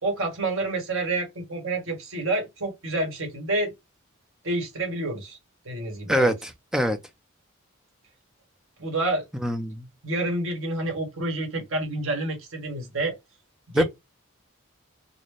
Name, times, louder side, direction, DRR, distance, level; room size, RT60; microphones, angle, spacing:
voice 1, 0.0-3.7 4.4-5.4 5.6-6.3 8.8-9.2 10.0-13.2 13.7-13.8, right 2 dB, 65° right, 1.5 m, -28 dB
voice 2, 6.1-7.0 9.4-9.9 13.7-13.8, equal, 5° right, 0.4 m, -24 dB
4.1 x 2.1 x 3.0 m
head